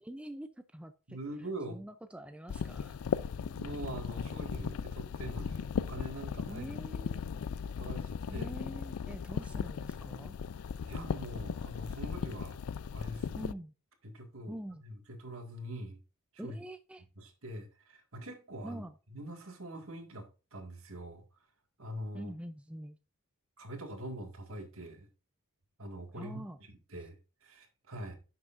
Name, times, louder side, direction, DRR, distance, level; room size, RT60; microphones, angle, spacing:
voice 1, 0.0-3.0 6.5-7.2 8.3-10.4 13.3-13.7 14.5-14.8 16.4-17.0 18.6-18.9 22.1-23.0 26.2-26.6, right 1 dB, 5° right, 0.4 m, -45 dB
voice 2, 1.1-1.8 3.4-6.7 7.6-8.5 10.9-12.6 12.9-13.5 14.0-14.6 14.8-16.0 16.3-16.6 17.2-18.8 19.1-21.2 21.8-22.3 23.6-25.1 25.8-27.2 27.4-28.2, right 1 dB, 65° right, 1.9 m, -44 dB
sound 1, 2.5-13.5, left 6 dB, 75° left, 0.4 m, -37 dB
10.0 x 6.7 x 2.5 m
head